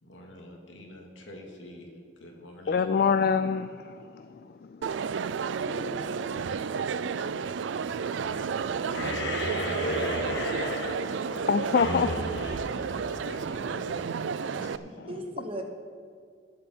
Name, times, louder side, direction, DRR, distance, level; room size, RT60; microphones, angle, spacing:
voice 1, 0.0-1.9 2.2-2.9 8.7-8.8 9.9-11.9 12.4-15.1, left 1 dB, 85° left, 0 dB, 2.2 m, -46 dB
voice 2, 2.7-4.3 4.7-4.8 7.1-7.4 8.3-8.4 8.9-9.2 11.5-12.1, left 6 dB, 55° left, 11 dB, 0.3 m, -26 dB
Crowd, 4.8-14.8, right 6 dB, 75° right, 0.4 m, -32 dB
voice 3, 5.6-6.4 15.1-15.6, equal, 30° right, 4 dB, 1.0 m, -38 dB
sound 1, 8.9-13.6, left 2 dB, 70° left, 1.4 m, -33 dB
18.5 x 7.5 x 4.5 m, 2.1 s
head